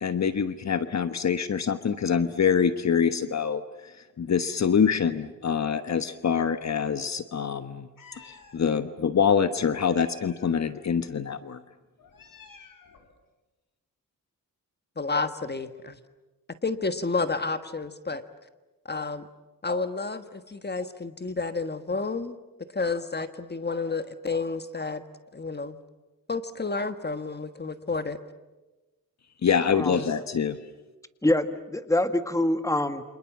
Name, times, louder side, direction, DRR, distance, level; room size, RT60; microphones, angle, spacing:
voice 1, 0.0-7.9 8.2-11.6 29.4-30.6, left 7 dB, 50° left, 11 dB, 1.2 m, -25 dB
Meow, 8.0-8.6 9.8-10.8 12.0-13.1, left 4 dB, 70° left, 4.2 m, -51 dB
voice 2, 15.0-16.0 16.6-18.2 18.8-19.3 19.6-22.3 22.7-25.0 25.3-25.8 26.3-28.2, left 3 dB, 30° left, 10 dB, 1.4 m, -30 dB
voice 3, 31.2-33.0, left 1 dB, 10° left, 9 dB, 1.7 m, -25 dB
29.5 x 26.5 x 7.4 m, 1.1 s
cardioid pair, 100°, 34 cm